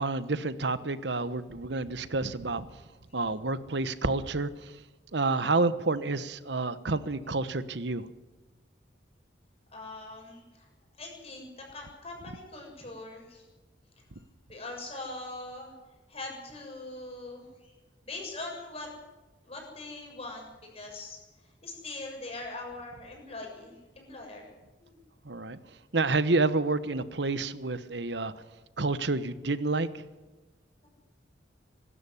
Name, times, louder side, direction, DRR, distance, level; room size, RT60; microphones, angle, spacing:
voice 1, 0.0-2.6 3.1-4.5 5.1-8.0 25.3-25.6 25.9-28.3 28.8-29.9, right 3 dB, 70° right, 14 dB, 1.1 m, -29 dB
voice 2, 9.7-10.7 11.0-13.5 14.0-14.1 14.5-15.7 16.1-17.7 18.0-18.9 19.4-21.2 21.6-24.5 24.8-25.0, left 2 dB, 35° left, 1 dB, 7.1 m, -42 dB
24.5 x 12.5 x 9.9 m, 1.2 s
head